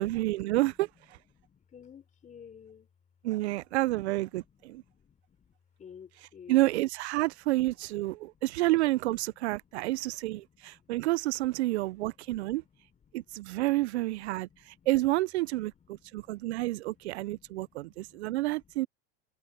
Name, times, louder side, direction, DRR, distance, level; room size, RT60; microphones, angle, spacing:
voice 1, 0.0-1.2 3.2-4.8 6.5-12.6 13.1-18.9, right 18 dB, 85° right, 0.5 m, -29 dB
voice 2, 1.3-2.9 4.4-6.7 8.1-8.4 10.6-11.0 11.8-11.9 12.3-13.4 14.2-14.9 15.9-18.4 18.8-18.9, left 7 dB, 25° left, 3.8 m, -55 dB
supercardioid pair, 120°, 32 cm